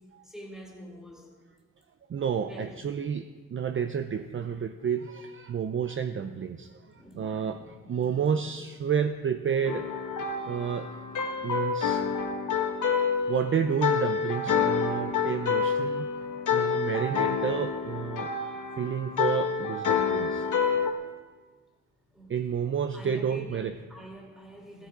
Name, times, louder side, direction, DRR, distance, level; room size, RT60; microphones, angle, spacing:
voice 1, 0.2-1.4 2.5-2.7 6.9-8.3 13.1-13.3 20.5-20.8 22.1-22.6 22.9-24.9, equal, ahead, -1 dB, 2.5 m, -47 dB
voice 2, 2.1-10.0 10.5-11.0 11.4-12.0 13.3-16.1 16.5-18.3 18.8-20.5 22.3-23.8, right 7 dB, 40° right, 9 dB, 0.5 m, -30 dB
sound 1, 9.6-20.9, left 6 dB, 70° left, 1.2 m, -28 dB
16.0 x 14.0 x 4.8 m, 1.4 s
wide cardioid pair, 175°, 32 cm